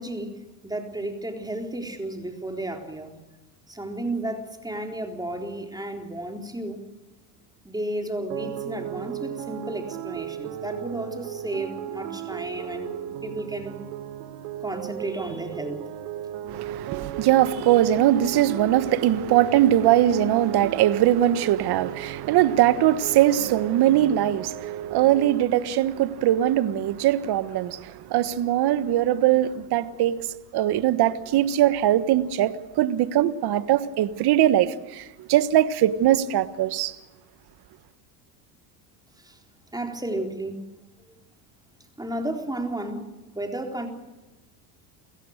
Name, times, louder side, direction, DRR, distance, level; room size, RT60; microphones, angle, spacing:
voice 1, 0.0-3.1 3.7-6.8 7.6-12.9 13.2-13.8 14.6-15.8 39.2-39.4 39.7-40.7 42.0-43.9, right 1 dB, 10° right, 3.9 m, -33 dB
sound 1, 8.3-25.4, right 10 dB, 75° right, 1.9 m, -35 dB
voice 2, 16.5-30.2 30.5-36.9, right 12 dB, 50° right, 1.5 m, -21 dB
30.0 x 16.5 x 6.6 m
supercardioid pair, 100°, 48 cm